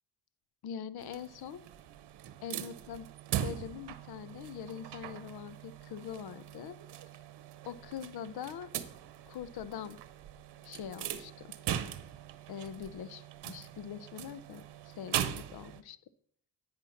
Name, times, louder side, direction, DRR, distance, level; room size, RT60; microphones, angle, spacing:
voice 1, 0.6-1.6 2.4-3.1 3.4-6.8 7.6-8.7 9.2-10.0 10.6-11.5 12.5-16.0, left 8 dB, 65° left, 16 dB, 0.7 m, -43 dB
sound 1, 1.0-15.8, right 11 dB, 75° right, 0.9 m, -41 dB
10.0 x 8.8 x 4.2 m, 0.62 s
cardioid pair, 100°, 41 cm